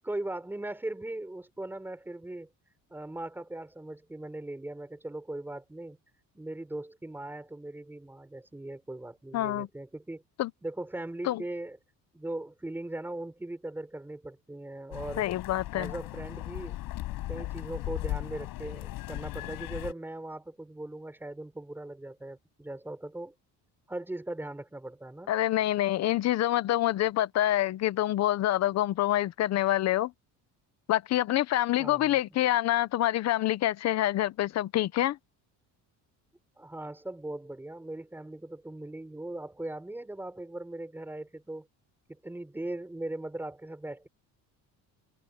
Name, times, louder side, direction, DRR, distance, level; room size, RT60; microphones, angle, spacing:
voice 1, 0.0-2.5 2.9-6.0 6.3-10.2 10.6-11.8 12.1-15.3 15.7-16.8 17.3-23.3 23.9-25.3 31.8-32.5 36.6-41.7 42.1-44.1, right 1 dB, 5° right, 4.7 m, -39 dB
voice 2, 9.3-9.7 10.4-10.5 11.2-11.4 15.2-15.9 25.3-30.1 30.9-35.2, left 13 dB, 45° left, 0.8 m, -26 dB
sound 1, 14.9-19.9, left 17 dB, 70° left, 7.8 m, -37 dB
cardioid pair, 170°, 36 cm